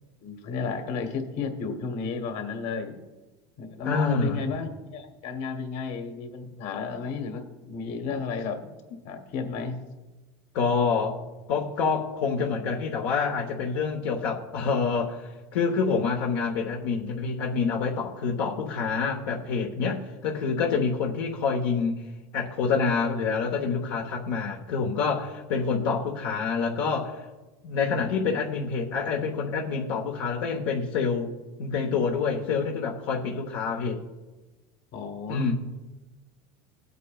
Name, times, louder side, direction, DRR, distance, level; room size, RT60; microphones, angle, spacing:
voice 1, 0.2-3.0 3.6-8.7 9.0-9.8 25.7-25.9 34.9-35.5, left 5 dB, 60° left, 6 dB, 1.5 m, -33 dB
voice 2, 3.8-4.4 10.5-11.2 11.5-22.0 22.3-27.2 27.6-31.3 31.6-34.0 35.3-35.5, left 5 dB, 80° left, 1 dB, 1.1 m, -27 dB
18.5 x 8.3 x 2.4 m, 1.2 s
supercardioid pair, 120°, 13 cm